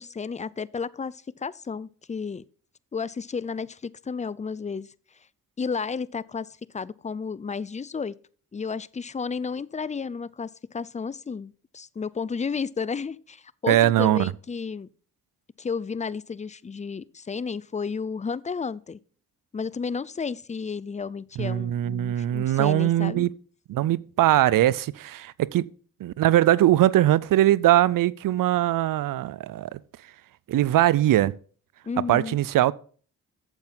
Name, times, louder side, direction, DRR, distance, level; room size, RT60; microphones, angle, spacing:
voice 1, 0.0-2.4 2.9-4.9 5.6-6.5 6.7-8.2 8.5-14.9 15.6-19.0 19.5-23.3 31.8-32.4, left 5 dB, 20° left, 0.4 m, -32 dB
voice 2, 13.7-14.3 21.4-23.3 23.7-25.7 26.0-29.8 30.5-31.3 32.1-32.7, right 13 dB, 65° right, 0.5 m, -21 dB
9.0 x 7.2 x 3.9 m
supercardioid pair, 45°, 35 cm